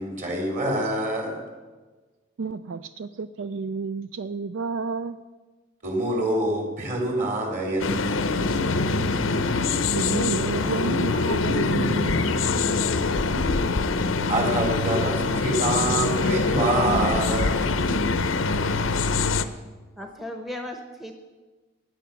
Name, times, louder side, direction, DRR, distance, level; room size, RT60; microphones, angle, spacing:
voice 1, 0.0-1.4 5.8-8.5 10.3-10.4 14.3-17.8, right 1 dB, 40° right, 1 dB, 3.3 m, -26 dB
voice 2, 2.4-5.2 9.9-12.2, right 4 dB, 75° right, 12 dB, 0.4 m, -31 dB
sound 1, 7.8-19.4, left 3 dB, 90° left, 0.7 m, -24 dB
voice 3, 20.0-21.1, left 1 dB, ahead, 4 dB, 0.8 m, -36 dB
16.0 x 9.5 x 5.9 m, 1.3 s
head